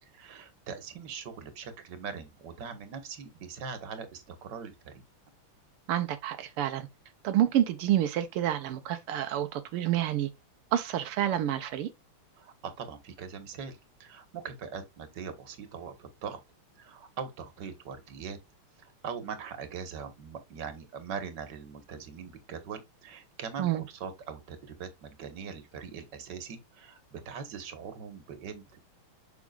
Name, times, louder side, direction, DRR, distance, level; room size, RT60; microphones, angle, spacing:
voice 1, 0.0-5.0 12.4-16.4 16.8-18.4 18.8-28.8, right 6 dB, 55° right, 1.9 m, -41 dB
voice 2, 5.9-6.9 7.2-10.3 10.7-11.9 23.6-23.8, right 11 dB, 90° right, 1.7 m, -28 dB
7.1 x 6.2 x 2.4 m
omnidirectional pair, 2.4 m